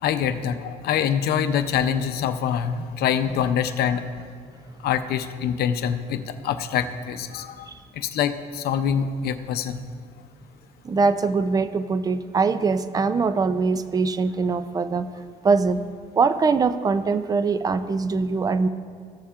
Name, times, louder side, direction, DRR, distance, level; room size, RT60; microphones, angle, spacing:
voice 1, 0.0-4.0 4.8-9.8, left 8 dB, 70° left, 9 dB, 0.6 m, -25 dB
voice 2, 10.8-15.1 15.4-15.8 16.2-18.7, right 4 dB, 20° right, 12 dB, 0.4 m, -22 dB
15.0 x 7.0 x 2.5 m, 2.2 s
cardioid pair, 110°, 17 cm